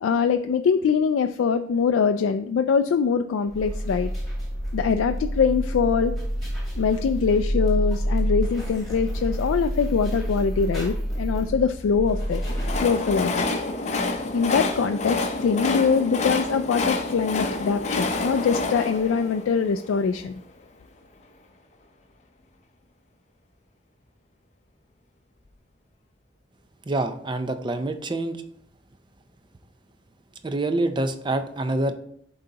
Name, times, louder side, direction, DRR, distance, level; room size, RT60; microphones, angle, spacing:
voice 1, 0.0-4.1 4.7-6.2 6.8-12.4 12.8-13.4 13.8-13.9 14.3-20.4, left 6 dB, 90° left, 7 dB, 0.3 m, -23 dB
sound 1, 3.5-13.4, equal, ahead, 2.3 m, -28 dB
Train, 12.1-20.3, left 3 dB, 35° left, 0.6 m, -28 dB
voice 2, 26.9-28.4 30.4-31.9, right 2 dB, 25° right, 8 dB, 0.5 m, -26 dB
11.0 x 3.9 x 2.8 m, 0.67 s
head